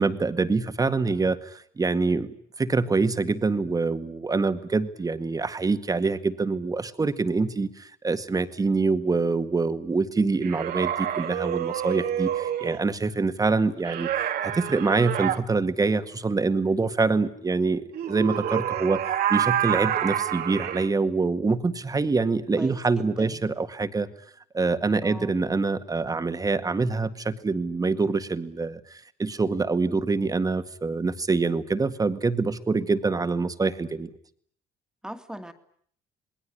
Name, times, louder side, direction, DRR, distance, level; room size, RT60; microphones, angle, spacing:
voice 1, 0.0-2.3 2.6-24.1 24.5-34.1, right 4 dB, 20° right, 10 dB, 1.9 m, -25 dB
sound 1, 10.4-12.8 13.8-15.4 17.9-20.9, right 10 dB, 65° right, 2.2 m, -28 dB
voice 2, 22.6-23.4 25.0-25.4 35.0-35.5, equal, 5° right, 7 dB, 2.3 m, -39 dB
28.0 x 20.5 x 9.9 m, 0.63 s
cardioid pair, 110°, 17 cm